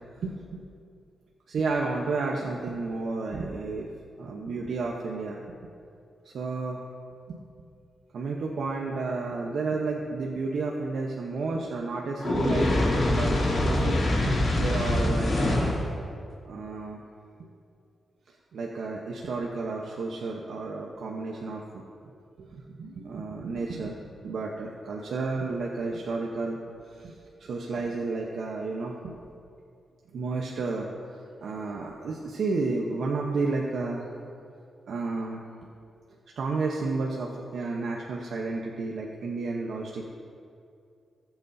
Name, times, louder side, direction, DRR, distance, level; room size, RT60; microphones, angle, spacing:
voice 1, 0.2-0.6 1.5-3.9 4.2-5.4 6.2-6.8 7.3-7.4 8.1-13.3 13.6-15.7 16.5-17.0 17.4-17.5 18.5-21.8 22.4-24.0 24.2-26.6 26.9-29.1 30.1-30.9 31.4-34.1 34.9-35.4 36.4-40.0, right 3 dB, 75° right, -1 dB, 0.9 m, -31 dB
Fire, 12.2-15.9, left 1 dB, 55° left, 2.7 m, -24 dB
19.0 x 8.1 x 2.7 m, 2.4 s
cardioid pair, 85°, 0 cm